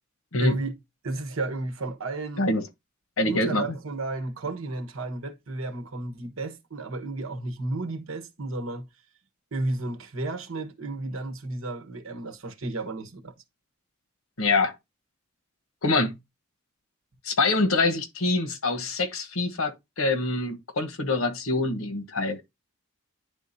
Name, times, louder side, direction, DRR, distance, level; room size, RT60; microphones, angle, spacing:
voice 1, 0.4-0.7 1.0-2.5 3.3-8.9 9.5-13.3, right 2 dB, 75° right, 1.1 m, -32 dB
voice 2, 3.2-3.7 14.4-14.7 15.8-16.1 17.2-22.4, left 3 dB, 85° left, 1.1 m, -25 dB
10.5 x 3.7 x 2.7 m
head